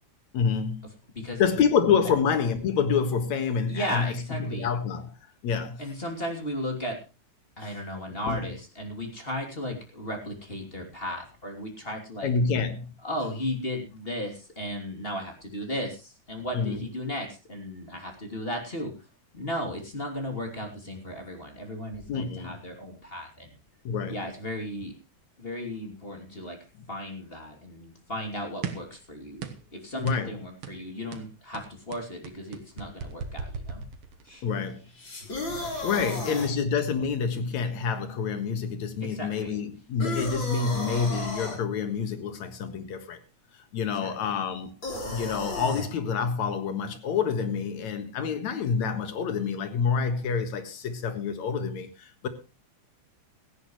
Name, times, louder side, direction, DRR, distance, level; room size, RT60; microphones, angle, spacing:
voice 1, 0.3-0.8 1.4-4.1 4.4-5.1 5.4-5.8 7.6-7.7 8.3-8.5 12.2-12.9 16.5-16.8 22.1-22.5 23.8-24.2 30.0-30.3 34.4-34.8 35.8-43.2 43.7-44.7 45.1-52.3, left 6 dB, 70° left, 2.9 m, -27 dB
voice 2, 3.7-4.7 5.8-7.0 7.6-12.3 13.0-18.9 19.3-23.5 24.1-24.9 25.4-26.6 26.9-33.8 34.2-34.4 36.1-36.2 39.0-39.6 44.0-44.3, left 1 dB, 20° left, 2.9 m, -35 dB
sound 1, 28.6-29.0 29.4-29.7 30.1-30.3 30.6-30.8 31.1-34.4, right 6 dB, 55° right, 2.0 m, -37 dB
sound 2, 35.0-36.5 40.0-41.6 44.8-45.9, left 2 dB, 40° left, 4.6 m, -34 dB
17.0 x 15.5 x 3.1 m
omnidirectional pair, 3.4 m